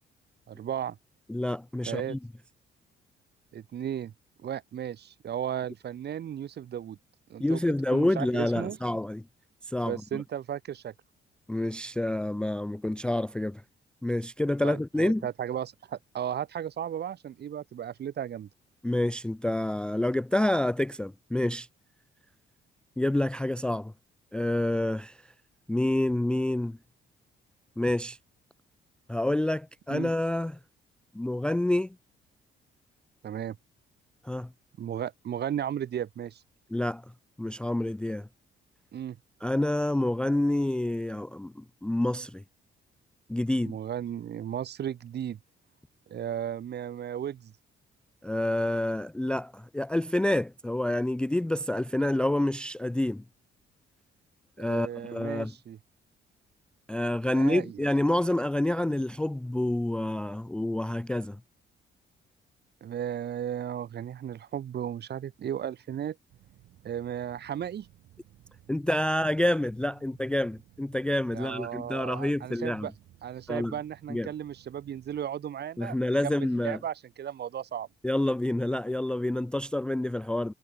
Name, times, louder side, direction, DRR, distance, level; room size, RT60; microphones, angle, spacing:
voice 1, 0.5-1.0 1.9-2.2 3.5-4.1 4.4-7.0 7.3-7.6 7.9-8.8 9.8-10.9 14.6-18.5 29.9-30.1 33.2-33.6 34.8-36.4 38.9-39.2 43.6-45.4 46.1-47.5 54.6-55.8 57.3-57.8 62.8-66.2 66.8-67.9 71.3-72.9 73.2-77.9, right 9 dB, 55° right, 1.2 m, -35 dB
voice 2, 1.3-2.2 7.4-9.2 9.6-10.2 11.5-13.6 14.0-15.3 18.8-21.7 23.0-23.9 24.3-25.2 25.7-26.8 27.8-28.2 29.1-30.6 31.1-32.0 34.2-34.5 36.7-37.0 37.4-38.3 39.4-42.4 43.3-43.8 48.2-53.2 54.6-55.5 56.9-61.4 68.7-72.9 73.5-73.8 74.1-74.3 75.8-76.8 78.0-80.5, left 1 dB, 5° left, 0.4 m, -28 dB
sound 1, 66.3-75.2, right 14 dB, 80° right, 2.7 m, -58 dB
cardioid pair, 90°, 20 cm